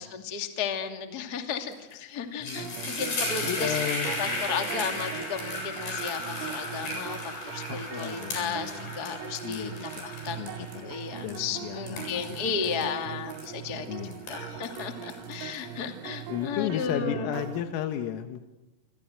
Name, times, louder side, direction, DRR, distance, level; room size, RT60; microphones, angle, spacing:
voice 1, 0.0-3.8 4.2-7.2 7.4-9.7 10.0-14.0 14.3-17.3, left 6 dB, 30° left, 5 dB, 1.8 m, -34 dB
sound 1, 1.7-1.9 2.2-13.8 14.1-16.1, left 2 dB, 50° left, 9.5 m, -35 dB
voice 2, 2.4-2.8 3.4-4.1 7.7-8.9 9.4-10.1 10.4-10.9 11.2-12.9 13.9-14.2 16.3-18.5, left 10 dB, 85° left, 7 dB, 4.0 m, -34 dB
sound 2, 2.6-17.6, right 11 dB, 85° right, 4.4 m, -41 dB
sound 3, 7.2-16.0, right 3 dB, 65° right, 9.5 m, -56 dB
29.0 x 26.0 x 7.8 m, 0.98 s
omnidirectional pair, 5.9 m